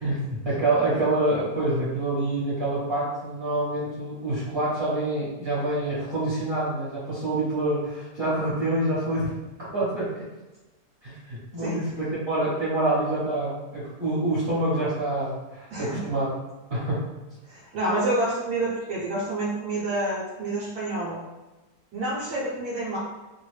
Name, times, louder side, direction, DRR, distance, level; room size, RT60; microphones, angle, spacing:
voice 1, 0.0-9.3 9.6-10.2 11.0-16.3 16.7-17.0, right 2 dB, 45° right, -10 dB, 1.1 m, -26 dB
voice 2, 17.5-21.2 21.9-23.0, right 2 dB, 70° right, -8 dB, 1.3 m, -28 dB
3.0 x 2.5 x 3.1 m, 1.1 s
omnidirectional pair, 1.8 m